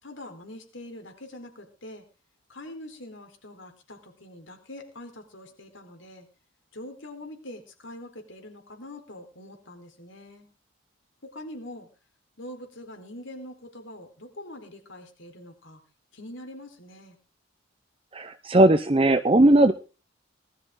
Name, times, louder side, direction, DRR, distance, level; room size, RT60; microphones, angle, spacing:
voice 1, 0.0-2.0 2.5-6.3 6.7-10.5 11.2-11.9 12.4-15.8 16.1-17.2, left 1 dB, 70° left, 4 dB, 4.1 m, -43 dB
voice 2, 18.1-19.7, right 1 dB, 30° right, 10 dB, 0.7 m, -18 dB
19.5 x 13.0 x 3.8 m, 0.34 s
head